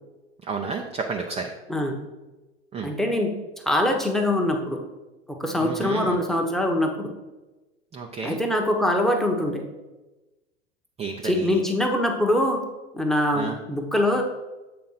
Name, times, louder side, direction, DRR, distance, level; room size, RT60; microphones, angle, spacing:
voice 1, 0.4-1.5 2.7-2.9 5.6-6.2 7.9-8.4 11.0-11.6 13.3-13.6, right 5 dB, 20° right, 2 dB, 0.6 m, -31 dB
voice 2, 2.8-3.3 3.6-4.8 5.3-7.1 8.2-9.6 11.2-12.6 12.9-14.2, left 1 dB, ahead, 3 dB, 1.0 m, -23 dB
7.8 x 3.7 x 5.6 m, 1.1 s
hypercardioid pair, 105°, 34 cm